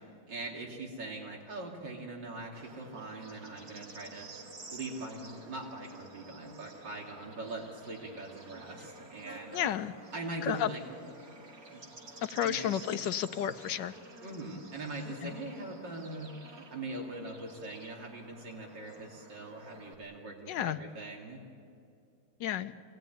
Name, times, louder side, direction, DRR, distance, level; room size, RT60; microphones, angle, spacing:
voice 1, 0.2-4.3 4.7-9.5 10.1-10.8 11.7-11.8 12.4-12.7 14.2-16.3 16.7-21.4, right 2 dB, 80° right, 0 dB, 3.4 m, -41 dB
Bird / Insect, 2.5-19.9, right 2 dB, 55° right, 2.7 m, -51 dB
voice 2, 9.5-10.0 10.4-10.7 12.2-13.9 15.2-15.3 20.5-20.8 22.4-22.7, left 10 dB, 80° left, 11 dB, 1.4 m, -32 dB
27.0 x 18.5 x 9.3 m, 2.4 s
omnidirectional pair, 1.9 m